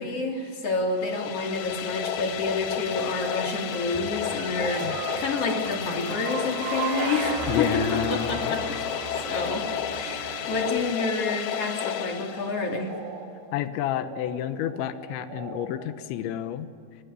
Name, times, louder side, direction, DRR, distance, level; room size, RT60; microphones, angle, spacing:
voice 1, 0.0-4.9 5.1-8.7 9.2-12.9, left 3 dB, 35° left, 2 dB, 3.4 m, -29 dB
sound 1, 0.9-12.9, left 10 dB, 70° left, 2.9 m, -32 dB
sound 2, 1.6-10.9, right 6 dB, 70° right, 3.8 m, -36 dB
voice 2, 7.5-8.8 13.5-16.7, left 11 dB, 90° left, 10 dB, 3.5 m, -30 dB
sound 3, 11.2-13.2 13.6-15.7, right 4 dB, 85° right, 5.3 m, -43 dB
24.5 x 22.0 x 8.4 m, 2.4 s
omnidirectional pair, 5.1 m